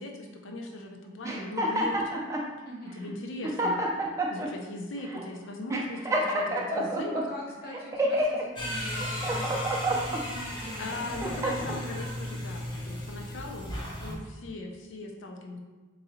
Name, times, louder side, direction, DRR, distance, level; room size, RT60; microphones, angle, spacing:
voice 1, 0.0-2.0 2.8-3.8 4.3-7.2 10.8-13.7 14.0-15.6, left 2 dB, 90° left, 2 dB, 0.6 m, -39 dB
sound 1, 1.2-2.5 3.1-3.2 3.4-4.5 5.1-5.2 5.7-7.2 7.7-8.4 8.9-10.2 10.8-11.8, right 1 dB, 15° right, 0.4 m, -28 dB
voice 2, 2.6-3.0 7.1-12.0, left 1 dB, 55° left, -3 dB, 0.9 m, -43 dB
sound 2, 8.6-14.1, left 1 dB, 25° left, 0.6 m, -36 dB
sound 3, 8.9-11.3, left 2 dB, 35° right, 0.9 m, -43 dB
3.7 x 3.1 x 2.6 m, 1.3 s
head